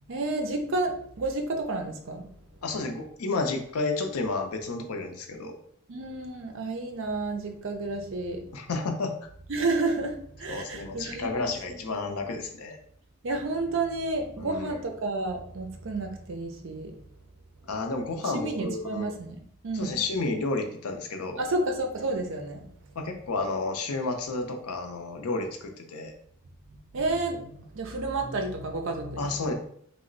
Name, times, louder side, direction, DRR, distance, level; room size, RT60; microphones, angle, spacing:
voice 1, 0.1-2.3 5.9-8.4 9.5-11.8 13.2-16.9 18.3-20.0 21.4-22.6 26.9-29.5, right 2 dB, 60° right, 4 dB, 0.5 m, -31 dB
voice 2, 2.6-5.6 8.5-9.1 10.5-12.8 14.4-14.8 17.7-19.1 19.7-21.4 23.0-26.1 29.2-29.5, left 3 dB, 85° left, 4 dB, 0.5 m, -31 dB
3.0 x 2.0 x 3.8 m, 0.65 s
head